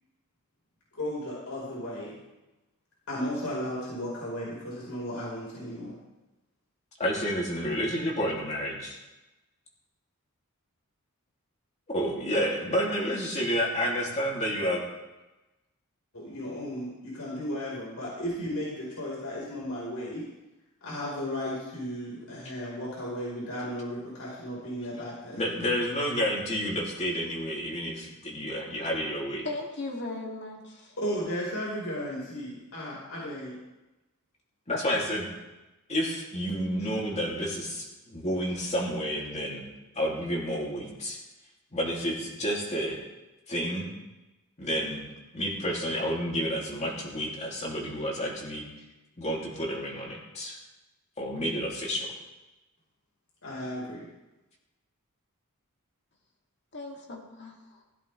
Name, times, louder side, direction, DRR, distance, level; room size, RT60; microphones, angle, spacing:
voice 1, 1.0-2.1 3.1-5.9 16.1-20.2 20.8-25.6 31.0-33.6 53.4-54.0, equal, 70° left, -5 dB, 5.1 m, -35 dB
voice 2, 7.0-9.0 11.9-14.8 25.3-29.4 34.7-35.3 35.9-39.6 39.9-41.2 41.7-43.0 43.5-43.9 44.6-45.0 45.3-48.6 49.2-50.6 51.2-52.1, equal, 30° left, -2 dB, 3.1 m, -30 dB
voice 3, 29.4-30.9 56.7-57.8, left 2 dB, 55° left, -1 dB, 2.9 m, -38 dB
16.5 x 15.0 x 3.5 m, 1.0 s
head